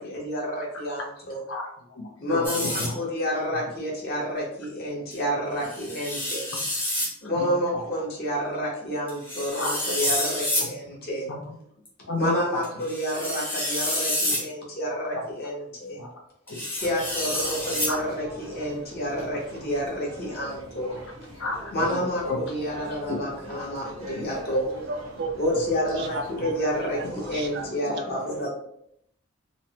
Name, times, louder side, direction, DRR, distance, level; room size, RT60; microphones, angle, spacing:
voice 1, 0.0-1.4 2.2-6.5 7.2-11.3 12.2-16.0 16.7-21.0 21.7-24.7 25.3-28.5, equal, 45° left, -3 dB, 0.8 m, -29 dB
voice 2, 1.5-2.9 7.2-7.8 9.6-9.7 10.6-10.7 11.3-11.4 12.1-12.6 15.1-15.2 16.0-16.1 16.5-16.6 17.9-18.1 21.4-22.4 24.1-24.2 27.9-28.0, left 2 dB, 75° left, 1 dB, 0.6 m, -33 dB
sound 1, 2.4-2.9 5.1-5.2 5.6-7.1 9.1-10.7 11.9-12.0 12.6-14.5 16.5-18.0, left 1 dB, 10° left, 0.6 m, -28 dB
sound 2, 16.8-27.7, right 1 dB, 75° right, 0.9 m, -43 dB
voice 3, 24.7-26.5 26.9-27.1 27.3-27.7, right 4 dB, 55° right, 7 dB, 0.3 m, -34 dB
3.1 x 2.0 x 2.8 m, 0.71 s
head